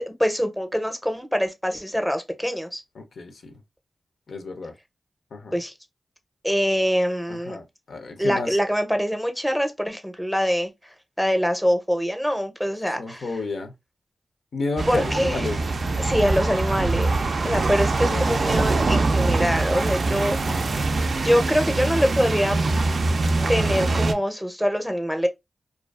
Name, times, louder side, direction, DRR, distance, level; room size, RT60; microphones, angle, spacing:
voice 1, 0.0-2.8 5.5-5.7 6.4-7.6 8.2-13.2 14.9-15.5 16.0-17.1 17.4-20.6 21.1-22.6 23.5-25.3, equal, ahead, 0.5 m, -24 dB
voice 2, 3.0-3.6 4.3-4.7 5.3-5.6 7.3-8.5 12.8-13.7 14.5-15.6 16.2-16.3 17.9-18.4, left 3 dB, 80° left, 0.4 m, -32 dB
sound 1, 14.8-24.1, right 3 dB, 65° right, 0.3 m, -23 dB
2.3 x 2.3 x 2.2 m
cardioid pair, 55°, 0 cm